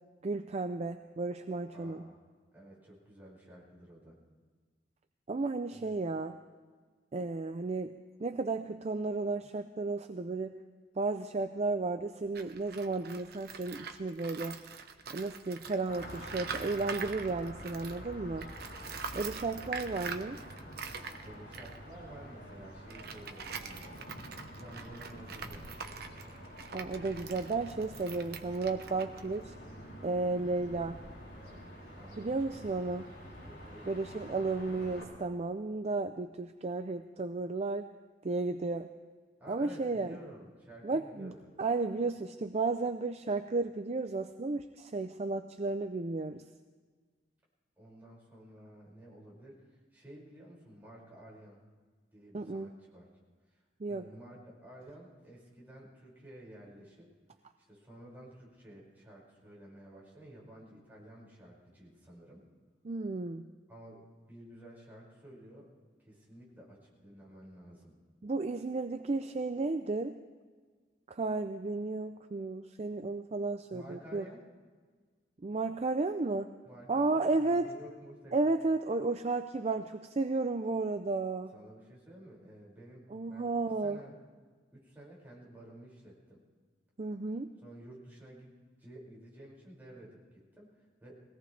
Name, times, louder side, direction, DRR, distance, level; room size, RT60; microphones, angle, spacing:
voice 1, 0.2-2.0 5.3-6.4 7.1-7.9 8.2-10.5 11.0-14.6 15.1-18.5 19.1-20.4 26.7-29.5 30.0-31.0 32.2-33.0 33.9-37.9 38.2-38.9 39.5-40.2 40.8-41.3 41.6-46.5 52.3-52.7 53.8-54.0 62.8-63.5 68.2-70.2 71.1-74.2 75.4-76.5 76.9-77.7 78.3-81.5 83.1-84.0 87.0-87.5, right 3 dB, 35° right, 8 dB, 0.5 m, -33 dB
voice 2, 1.7-2.2 2.5-4.2 5.7-5.9 19.5-19.9 21.2-24.1 24.5-25.9 31.9-33.0 33.4-33.9 39.4-41.5 47.8-51.6 52.1-53.1 53.5-53.6 53.9-57.1 57.7-62.5 63.7-65.7 66.1-67.9 73.7-74.4 76.6-78.5 81.5-83.5 83.8-84.2 84.7-86.4 87.6-88.5 88.8-91.2, right 1 dB, 10° right, -5 dB, 5.7 m, -52 dB
Tools, 12.2-18.1 18.4-29.8, right 5 dB, 60° right, 1.0 m, -45 dB
sound 1, 15.9-35.0, equal, 60° left, 6.0 m, -48 dB
22.0 x 17.5 x 3.3 m, 1.5 s
head